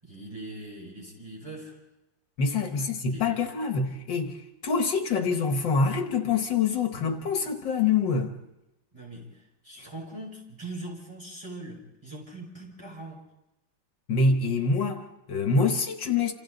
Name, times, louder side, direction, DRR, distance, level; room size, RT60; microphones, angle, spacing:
voice 1, 0.0-1.8 2.8-3.4 8.9-13.2, right 2 dB, 15° right, 5.5 m, -41 dB
voice 2, 2.4-4.4 4.6-8.4 14.1-16.3, left 4 dB, 70° left, 2.0 m, -25 dB
28.5 x 27.5 x 4.0 m
omnidirectional pair, 2.1 m